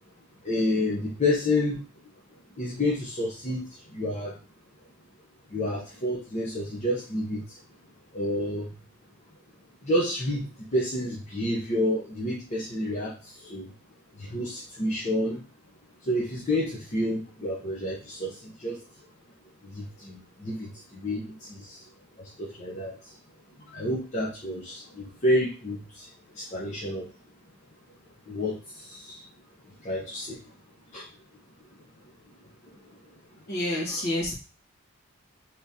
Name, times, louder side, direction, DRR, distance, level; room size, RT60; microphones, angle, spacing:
voice 1, 0.4-1.8 2.6-3.6 3.9-4.3 5.5-7.4 8.1-8.7 9.8-13.1 13.4-13.7 14.2-15.4 16.1-18.8 19.7-21.2 21.6-21.8 22.4-22.9 23.7-26.1 26.4-27.1 28.3-28.6 28.9-29.2 29.8-30.4 30.9-31.0, left 1 dB, 35° left, -4 dB, 0.7 m, -29 dB
voice 2, 33.5-34.3, left 1 dB, 55° left, -3 dB, 1.1 m, -28 dB
3.6 x 2.9 x 2.7 m, 0.34 s
head